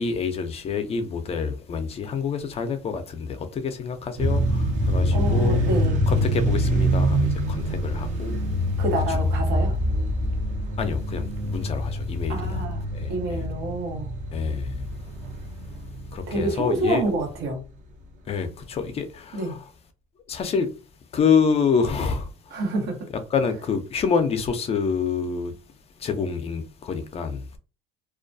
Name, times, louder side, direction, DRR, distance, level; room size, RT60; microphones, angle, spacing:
voice 1, 0.0-5.6 6.1-8.4 9.1-9.2 10.8-12.6 12.9-13.4 14.3-14.9 16.1-17.0 18.3-19.6 20.3-20.7 21.1-22.3 23.3-25.5 26.0-27.5, left 6 dB, 35° left, 0.5 m, -27 dB
sound 1, 4.2-17.3, equal, 50° right, 0.7 m, -25 dB
voice 2, 5.1-6.0 8.8-9.7 12.3-12.8 13.1-14.1 16.3-17.6 19.3-19.6 22.5-23.1, right 2 dB, 75° right, 1.0 m, -27 dB
2.3 x 2.2 x 2.5 m
supercardioid pair, 100°, 17 cm